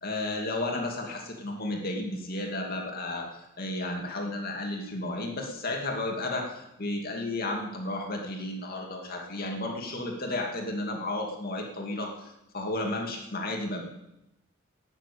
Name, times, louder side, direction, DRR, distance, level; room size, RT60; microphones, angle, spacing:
voice 1, 0.0-13.9, left 2 dB, 50° left, 1 dB, 2.4 m, -33 dB
12.5 x 8.9 x 8.6 m, 0.88 s
head